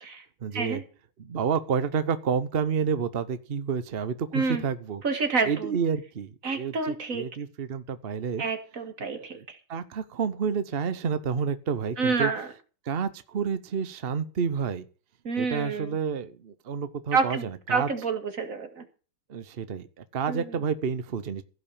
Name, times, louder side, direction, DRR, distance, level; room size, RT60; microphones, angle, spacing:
voice 1, 0.4-0.8 1.2-5.0 5.4-8.4 9.0-12.3 12.8-14.8 15.4-17.9 19.3-21.4, right 6 dB, 55° right, 13 dB, 0.6 m, -30 dB
voice 2, 4.3-4.6 5.0-5.7 6.4-7.3 8.4-9.6 12.0-12.5 15.2-15.9 17.1-18.8 20.3-20.4, right 4 dB, 40° right, 7 dB, 2.2 m, -28 dB
16.0 x 5.7 x 8.7 m, 0.36 s
omnidirectional pair, 2.3 m